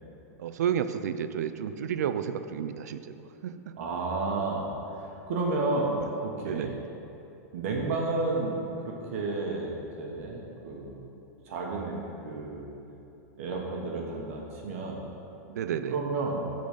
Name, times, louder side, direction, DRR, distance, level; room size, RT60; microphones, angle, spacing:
voice 1, 0.4-3.1 3.4-3.6 6.4-6.8 15.5-16.0, right 8 dB, 80° right, 11 dB, 0.4 m, -31 dB
voice 2, 3.8-6.7 7.5-11.1 11.4-12.7 13.4-15.0 15.9-16.4, right 3 dB, 55° right, -1 dB, 1.1 m, -31 dB
8.5 x 4.0 x 6.4 m, 2.9 s
supercardioid pair, 165°, 9 cm